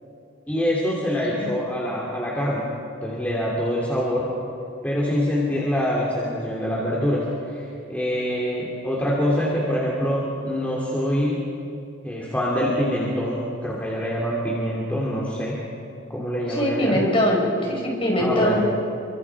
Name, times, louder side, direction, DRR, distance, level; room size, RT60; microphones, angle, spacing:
voice 1, 0.5-2.6 3.0-4.3 4.8-7.6 7.9-11.5 12.0-15.6 16.1-17.0 18.2-18.6, equal, 10° left, -5 dB, 3.1 m, -25 dB
voice 2, 1.1-1.5 16.5-18.7, equal, 30° left, -1 dB, 5.4 m, -22 dB
30.0 x 24.5 x 4.9 m, 2.6 s
head